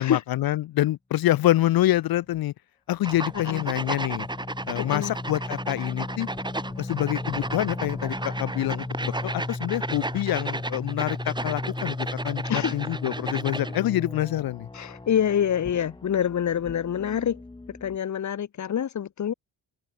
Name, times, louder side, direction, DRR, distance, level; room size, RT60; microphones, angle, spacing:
voice 1, 0.0-2.5 2.9-4.3 4.7-6.3 6.8-14.7, left 14 dB, 55° left, 0.5 m, -26 dB
sound 1, 2.2-2.4 3.1-18.0, left 2 dB, 10° left, 1.2 m, -36 dB
sound 2, 3.0-13.8, right 2 dB, 10° right, 1.3 m, -34 dB
voice 2, 3.3-3.6 4.8-5.1 12.4-12.7 14.7-17.4 17.7-19.3, left 9 dB, 40° left, 1.2 m, -26 dB
open air
cardioid pair, 115°, 43 cm